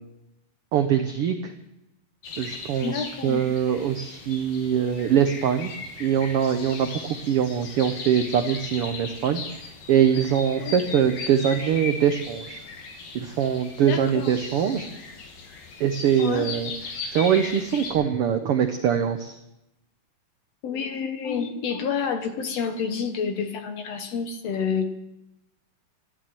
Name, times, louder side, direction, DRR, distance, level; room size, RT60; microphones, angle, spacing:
voice 1, 0.7-1.5 2.4-2.9 3.2-5.7 6.0-7.0 7.3-9.4 9.9-12.6 13.1-14.9 15.8-16.7 17.1-19.3, right 8 dB, 80° right, 7 dB, 1.2 m, -23 dB
sound 1, 2.2-17.9, left 4 dB, 85° left, 3.6 m, -38 dB
voice 2, 2.8-3.5 10.6-11.0 13.8-14.4 16.2-16.5 20.6-24.9, left 6 dB, 65° left, 7 dB, 1.9 m, -29 dB
13.5 x 11.5 x 7.6 m, 0.89 s
omnidirectional pair, 3.7 m